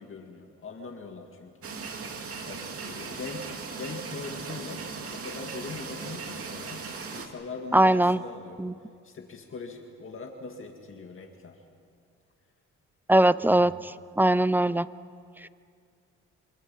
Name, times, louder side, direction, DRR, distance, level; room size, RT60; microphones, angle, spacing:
voice 1, 0.0-1.5 2.5-4.8 5.1-6.8 7.1-8.6 9.0-11.6 13.4-13.7, left 4 dB, 45° left, 3 dB, 2.1 m, -41 dB
sound 1, 1.6-7.3, right 4 dB, 50° right, 2.4 m, -38 dB
voice 2, 7.7-8.2 8.6-8.7 13.1-14.9, right 1 dB, 5° right, 17 dB, 0.5 m, -21 dB
26.0 x 25.5 x 5.6 m, 2.3 s
cardioid pair, 90°, 30 cm